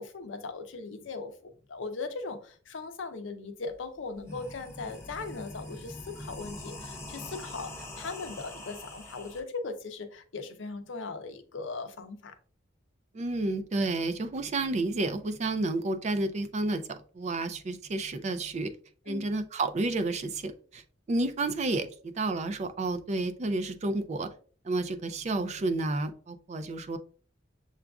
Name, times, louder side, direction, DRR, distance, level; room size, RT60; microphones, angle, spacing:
voice 1, 0.0-12.3 19.1-19.2, left 4 dB, 75° left, 8 dB, 0.6 m, -39 dB
sound 1, 3.7-3.8 4.1-9.4, left 1 dB, 15° left, 0.6 m, -43 dB
voice 2, 13.1-16.8 17.1-18.7 19.1-20.8 21.1-24.3 24.6-27.0, right 2 dB, 35° right, 9 dB, 0.4 m, -30 dB
6.8 x 2.4 x 2.3 m, 0.42 s
head